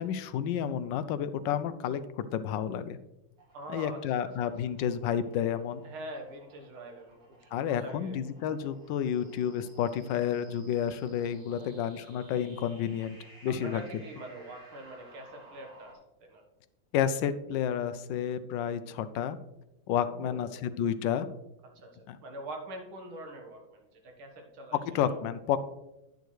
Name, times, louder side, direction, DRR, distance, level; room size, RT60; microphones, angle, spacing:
voice 1, 0.0-3.0 3.7-5.8 7.5-13.2 13.4-13.8 16.9-19.4 19.9-21.3 22.1-22.2 24.7-25.6, left 9 dB, 75° left, 12 dB, 1.1 m, -30 dB
sound 1, 3.4-15.9, right 1 dB, 60° right, 3.0 m, -57 dB
voice 2, 3.5-4.5 5.8-8.2 11.5-11.7 13.5-16.4 20.0-20.7 21.6-24.8, right 1 dB, 80° right, 3 dB, 2.2 m, -44 dB
10.0 x 7.1 x 3.1 m, 0.91 s
omnidirectional pair, 2.3 m